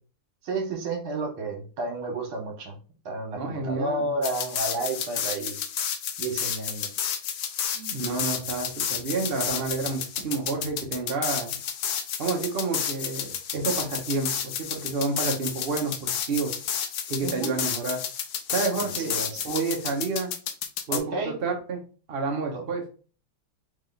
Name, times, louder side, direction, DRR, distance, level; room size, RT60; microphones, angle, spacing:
voice 1, 0.4-2.8 3.1-5.6 6.2-6.9 17.2-17.6 18.8-19.4 20.9-21.3 22.5-22.6, right 2 dB, 70° right, 2 dB, 2.0 m, -31 dB
voice 2, 3.4-4.1 7.7-11.5 12.2-16.5 17.1-18.0 18.5-19.2 19.4-20.3 20.9-21.8 22.1-22.9, right 4 dB, 45° right, 1 dB, 0.7 m, -29 dB
sound 1, 4.2-21.0, left 8 dB, 75° left, 0.9 m, -31 dB
3.6 x 3.3 x 3.9 m, 0.38 s
omnidirectional pair, 2.4 m